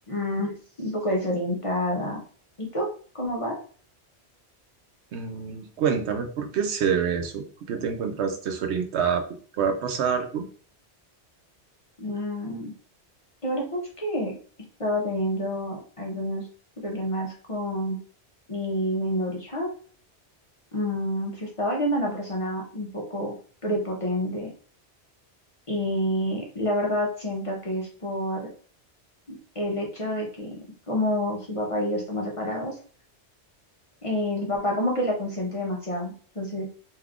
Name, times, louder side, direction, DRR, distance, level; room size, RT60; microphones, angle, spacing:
voice 1, 0.1-2.2 2.6-2.9 3.1-3.6 12.0-12.7 13.4-14.4 14.8-16.5 16.8-18.0 18.5-19.7 20.7-23.3 23.6-24.5 25.7-28.4 29.3-30.6 30.9-32.8 34.0-36.6, equal, 35° left, -1 dB, 0.7 m, -28 dB
voice 2, 5.1-9.2 9.6-10.5, right 7 dB, 75° right, 6 dB, 0.9 m, -27 dB
2.7 x 2.3 x 3.5 m, 0.43 s
omnidirectional pair, 1.1 m